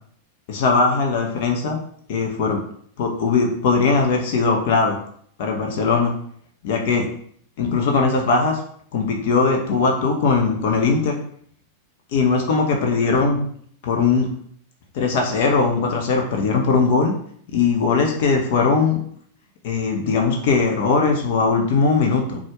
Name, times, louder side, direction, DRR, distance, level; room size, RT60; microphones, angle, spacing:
voice 1, 0.5-1.8 2.1-2.6 3.0-5.0 5.4-6.1 6.6-7.1 7.6-8.6 8.9-11.2 12.1-13.4 13.8-14.3 14.9-17.1 17.5-19.0 19.6-22.4, left 4 dB, 50° left, 2 dB, 0.8 m, -19 dB
4.2 x 2.4 x 4.5 m, 0.62 s
figure-of-eight pair, 90°, 0 cm